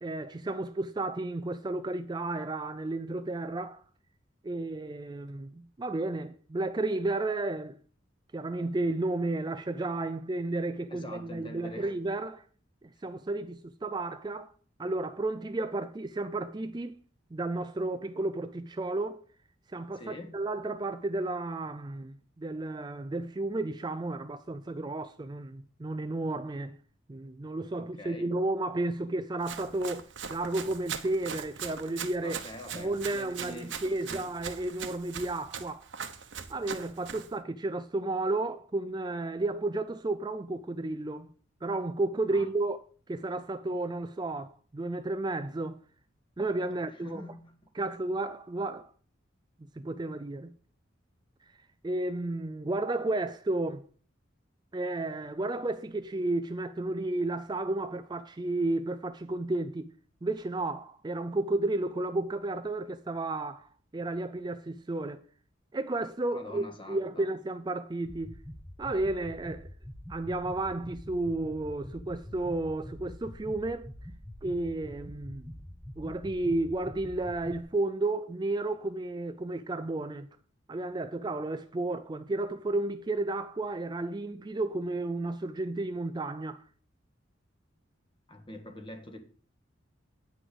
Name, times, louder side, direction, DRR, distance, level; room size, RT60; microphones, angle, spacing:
voice 1, 0.0-3.8 4.4-7.8 8.3-12.4 13.0-14.5 14.8-17.0 17.3-19.2 19.7-26.8 27.1-32.4 32.7-35.9 36.5-41.3 41.6-42.8 43.1-45.8 46.4-47.2 47.8-48.9 49.8-50.5 51.8-53.9 54.7-59.9 60.2-65.2 65.7-68.4 68.8-69.7 70.1-73.9 74.4-75.5 76.0-80.3 80.7-86.6, right 2 dB, 20° right, 0.4 m, -32 dB
voice 2, 10.9-11.9 13.0-13.1 19.9-20.4 27.8-28.4 32.2-33.8 34.1-34.3 42.3-42.5 46.7-47.9 66.3-67.3 88.3-89.2, left 1 dB, 25° left, 1.6 m, -45 dB
Run, 29.4-37.3, right 7 dB, 70° right, 1.1 m, -41 dB
sound 1, 68.1-77.6, equal, 5° left, 0.8 m, -45 dB
9.4 x 6.2 x 6.9 m
head